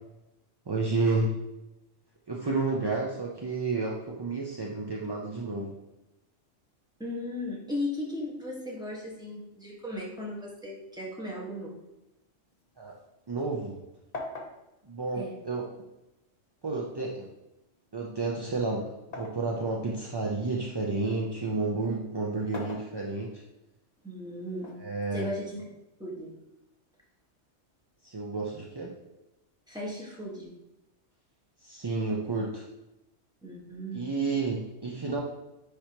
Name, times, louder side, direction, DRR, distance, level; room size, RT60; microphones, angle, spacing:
voice 1, 0.7-1.3 2.3-5.7 12.8-13.0 13.3-13.8 14.8-15.7 16.6-17.3 17.9-23.4 24.8-25.3 28.0-28.9 31.6-32.6 33.9-35.2, right 3 dB, 35° right, -2 dB, 0.4 m, -31 dB
voice 2, 7.0-11.7 15.1-15.4 16.9-17.0 24.0-24.7 25.1-25.6 26.0-26.4 29.7-30.5 33.4-34.6, left 1 dB, 5° right, -5 dB, 1.4 m, -37 dB
sound 1, 12.5-13.8 14.1-16.1 17.0-19.5 20.0-21.3 22.3-23.5 24.6-25.6, left 2 dB, 35° left, 1.0 m, -44 dB
10.0 x 3.4 x 3.0 m, 0.95 s
omnidirectional pair, 1.2 m